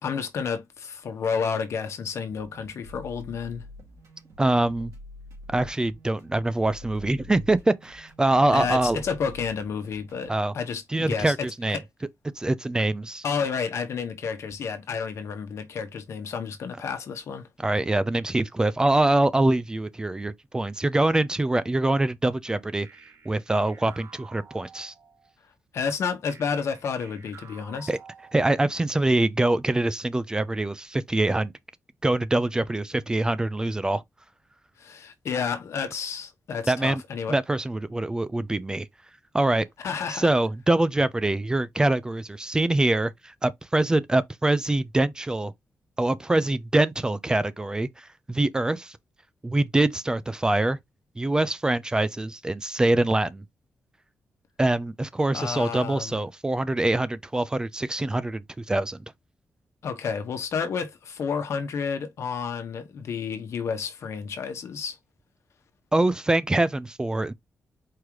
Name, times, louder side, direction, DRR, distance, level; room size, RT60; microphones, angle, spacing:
voice 1, 0.0-3.7 8.5-11.3 11.7-11.8 13.2-17.5 25.7-27.9 34.8-37.3 39.8-40.3 55.3-56.2 59.8-65.0, left 6 dB, 75° left, 1.0 m, -30 dB
sound 1, 2.3-10.3, left 1 dB, 80° right, 2.5 m, -46 dB
voice 2, 4.4-4.9 5.5-9.0 10.3-10.5 10.9-11.8 12.4-13.2 17.6-22.9 23.3-24.9 27.9-28.0 28.3-31.5 32.0-34.0 36.7-37.0 37.3-38.9 39.3-39.7 40.1-45.5 46.0-49.0 49.4-50.8 51.2-53.4 54.6-59.0 65.9-67.3, right 2 dB, 15° right, 0.4 m, -24 dB
sound 2, 22.8-25.3 26.3-28.8, right 6 dB, 65° right, 1.3 m, -50 dB
4.7 x 3.6 x 3.1 m
wide cardioid pair, 140°, 5 cm